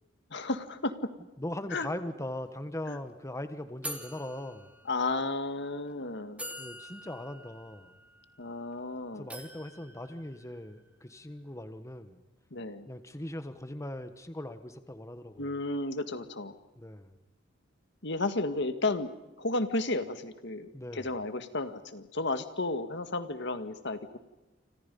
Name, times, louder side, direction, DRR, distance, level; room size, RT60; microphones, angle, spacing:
voice 1, 0.3-1.1 1.7-1.9 2.9-3.0 4.9-6.4 8.4-9.3 12.5-12.9 15.4-16.6 18.0-19.1 19.4-24.2, left 2 dB, 65° left, 9 dB, 1.9 m, -33 dB
voice 2, 1.4-4.7 6.6-7.9 9.2-12.2 12.9-15.5 16.8-17.2 20.7-21.1, left 1 dB, 15° left, 9 dB, 1.4 m, -40 dB
sound 1, 2.5-2.6 2.8-3.1 3.8-5.3 5.9-6.0 6.4-8.8 9.3-10.9, equal, 5° right, 2.8 m, -45 dB
29.5 x 26.0 x 5.4 m, 1.0 s
head